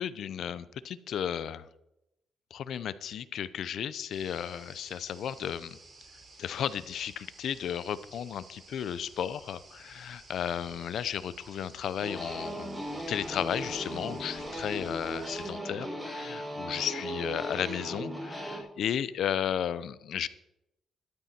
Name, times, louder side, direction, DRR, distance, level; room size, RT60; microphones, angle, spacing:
voice 1, 0.0-1.6 2.5-5.8 6.4-20.3, left 9 dB, 75° left, 16 dB, 0.7 m, -34 dB
sound 1, 4.1-15.5, right 3 dB, 40° right, 4.3 m, -54 dB
sound 2, 12.0-18.6, equal, 10° right, 6.3 m, -37 dB
13.0 x 12.0 x 4.4 m, 0.88 s
cardioid pair, 85°, 0 cm